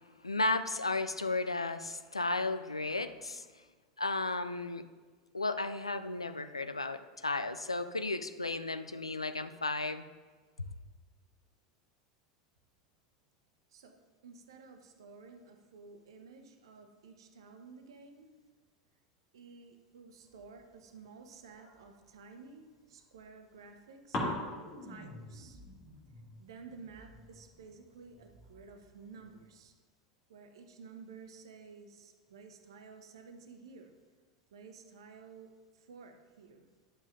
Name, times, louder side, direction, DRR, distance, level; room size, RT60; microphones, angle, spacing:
voice 1, 0.2-3.5 4.0-4.8 5.3-10.1 10.6-10.7, left 3 dB, 85° left, 10 dB, 0.3 m, -34 dB
voice 2, 13.7-18.3 19.3-25.6 26.4-29.7 30.3-33.9 34.5-36.7, right 5 dB, 65° right, 6 dB, 0.8 m, -53 dB
sound 1, 20.2-22.3 22.9-23.8 24.1-29.6, left 1 dB, 40° left, 2.6 m, -44 dB
11.0 x 7.2 x 2.6 m, 1.4 s
figure-of-eight pair, 80°, 3 cm